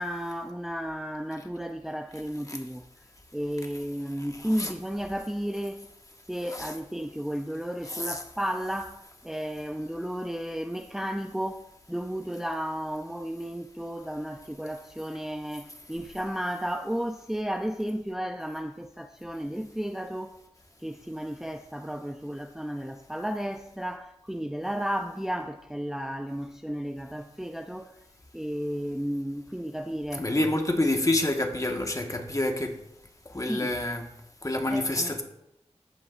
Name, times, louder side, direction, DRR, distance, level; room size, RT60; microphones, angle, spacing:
voice 1, 0.0-2.9 3.3-5.9 6.3-20.4 20.8-27.9 28.3-30.4 33.4-33.8 34.7-35.2, equal, 5° right, 0.5 m, -33 dB
voice 2, 7.9-8.2 30.2-32.7 33.3-34.0 34.4-35.2, left 1 dB, 30° left, 1.5 m, -27 dB
14.0 x 7.6 x 2.5 m
cardioid pair, 40°, 12 cm